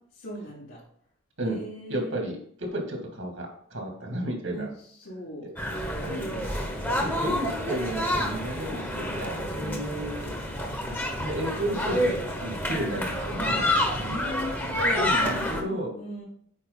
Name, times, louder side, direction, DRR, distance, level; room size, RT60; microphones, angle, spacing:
voice 1, 0.1-0.8 1.4-2.2 4.5-4.7 5.0-6.5 9.6-9.8 14.0-16.2, equal, 80° left, -9 dB, 3.1 m, -38 dB
voice 2, 1.9-4.7 5.4-5.5 6.1-6.4 6.8-10.3 11.2-14.2 15.0-15.9, right 1 dB, 75° right, 1 dB, 2.3 m, -33 dB
sound 1, 5.6-15.6, left 1 dB, 10° left, 1.1 m, -28 dB
8.9 x 4.9 x 4.0 m, 0.62 s
head